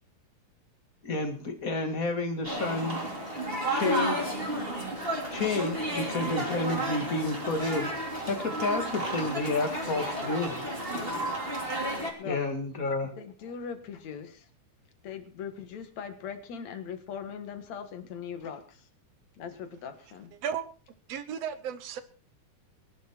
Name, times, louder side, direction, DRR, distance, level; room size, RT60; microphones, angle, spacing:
voice 1, 1.0-3.0 3.7-4.3 5.3-7.9 8.2-10.7 12.2-13.1, left 3 dB, 30° left, 6 dB, 1.9 m, -30 dB
sound 1, 2.4-12.1, right 1 dB, 20° right, 3.1 m, -32 dB
voice 2, 13.2-14.4 15.0-18.8 19.4-20.3, left 7 dB, 60° left, 9 dB, 2.8 m, -40 dB
voice 3, 21.1-22.0, right 8 dB, 65° right, 13 dB, 1.9 m, -34 dB
20.5 x 11.5 x 4.5 m, 0.41 s
omnidirectional pair, 3.6 m